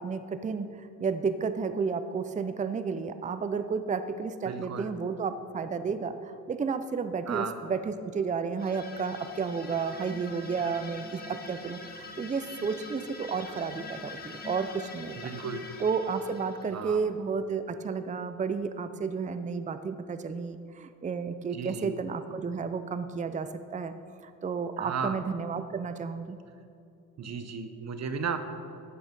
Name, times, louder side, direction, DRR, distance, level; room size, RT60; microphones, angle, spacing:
voice 1, 0.0-15.2 15.8-23.9 24.2-26.4, right 5 dB, 25° right, 11 dB, 0.5 m, -32 dB
voice 2, 4.4-4.9 7.3-7.6 15.2-15.7 16.7-17.0 21.5-22.0 24.8-25.2 27.2-28.4, right 6 dB, 50° right, 9 dB, 1.1 m, -34 dB
sound 1, 8.6-17.0, left 3 dB, 30° left, 1.6 m, -44 dB
13.0 x 8.7 x 5.4 m, 2.7 s
cardioid pair, 90°, 33 cm